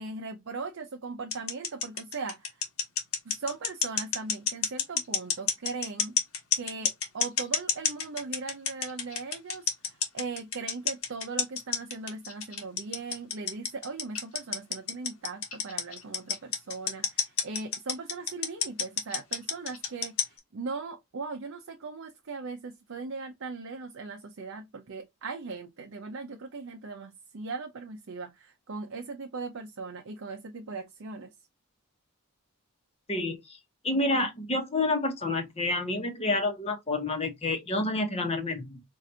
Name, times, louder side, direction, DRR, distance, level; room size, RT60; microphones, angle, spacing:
voice 1, 0.0-2.6 3.2-6.2 6.6-31.3, right 4 dB, 60° right, 0.5 m, -39 dB
sound 1, 1.3-20.4, left 7 dB, 80° left, 1.2 m, -29 dB
voice 2, 33.1-33.4 33.8-38.8, left 2 dB, 30° left, 0.9 m, -29 dB
4.6 x 2.5 x 2.7 m
head